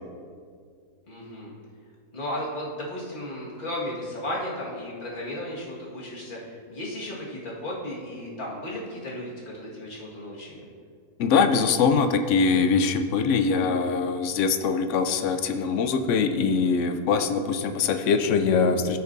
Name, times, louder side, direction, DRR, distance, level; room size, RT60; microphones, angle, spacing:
voice 1, 1.1-1.5 2.1-10.6, left 1 dB, 30° left, -5 dB, 1.8 m, -34 dB
voice 2, 11.2-19.0, left 5 dB, 65° left, 8 dB, 0.8 m, -23 dB
14.5 x 6.7 x 2.6 m, 2.1 s
omnidirectional pair, 1.7 m